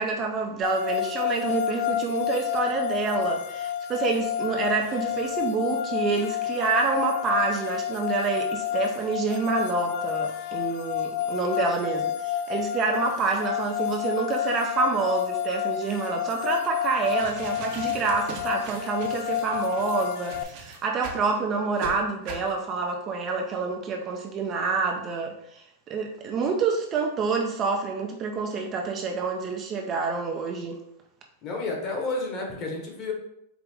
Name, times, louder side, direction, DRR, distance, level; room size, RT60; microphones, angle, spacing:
voice 1, 0.0-30.8, right 4 dB, 30° right, 2 dB, 0.5 m, -27 dB
sound 1, 0.6-20.4, left 10 dB, 50° left, 0.3 m, -30 dB
sound 2, 16.9-21.3 21.8-21.9 22.3-22.5, right 4 dB, 50° right, 0.9 m, -41 dB
voice 2, 31.4-33.1, left 3 dB, 30° left, 0 dB, 1.1 m, -31 dB
4.6 x 2.5 x 3.5 m, 0.76 s
supercardioid pair, 145°, 0 cm